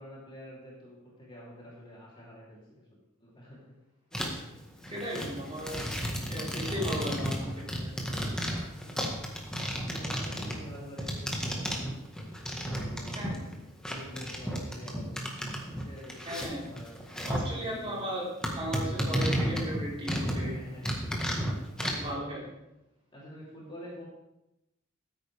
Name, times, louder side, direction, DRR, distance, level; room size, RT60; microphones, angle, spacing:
voice 1, 0.0-3.6 4.1-4.3 5.8-6.1 8.5-8.7 9.8-11.8 12.2-13.2 13.8-15.2 15.7-16.2 16.6-16.9 17.4-18.0 20.3-21.0 21.8-21.9 23.1-24.0, equal, 25° left, -6 dB, 3.4 m, -47 dB
sound 1, 4.1-4.5 4.8-13.6 13.8-17.5 17.9-18.0 18.4-20.5 20.8-22.1, equal, 5° left, 1.6 m, -33 dB
voice 2, 4.9-5.8 6.3-7.9 13.2-13.5 16.3-16.6 17.3-18.3 18.6-20.5 21.8-22.5, equal, 30° right, -6 dB, 4.4 m, -36 dB
14.5 x 8.9 x 3.5 m, 0.90 s
head